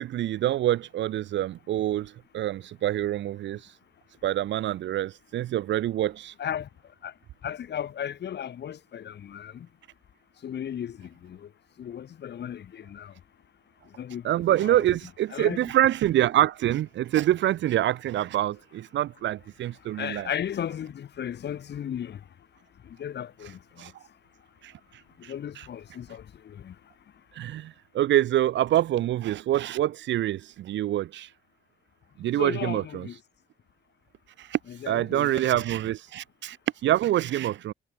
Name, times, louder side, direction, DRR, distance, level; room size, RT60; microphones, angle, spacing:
voice 1, 0.0-3.7 4.2-6.3 14.2-20.3 23.8-23.9 24.6-24.7 25.2-25.7 27.3-31.3 32.2-33.1 34.4-34.6 34.9-36.6 36.8-37.7, right 13 dB, 70° right, 0.6 m, -26 dB
voice 2, 7.4-9.7 10.4-11.5 11.8-13.1 14.0-14.2 14.6-14.8 15.3-15.6 20.0-22.2 22.9-23.6 25.3-26.7 32.4-33.2 34.7-35.3, left 9 dB, 60° left, 2.4 m, -35 dB
cardioid pair, 90°, 20 cm